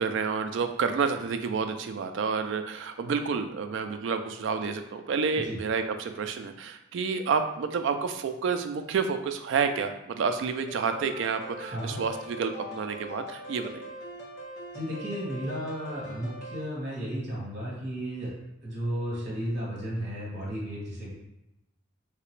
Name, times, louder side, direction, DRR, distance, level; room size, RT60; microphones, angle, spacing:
voice 1, 0.0-13.8, right 5 dB, 60° right, 7 dB, 0.3 m, -29 dB
sound 1, 10.7-16.6, equal, 55° left, 0.6 m, -42 dB
voice 2, 14.7-18.3 18.6-21.1, equal, 35° right, -5 dB, 1.3 m, -33 dB
3.2 x 2.9 x 3.1 m, 0.87 s
head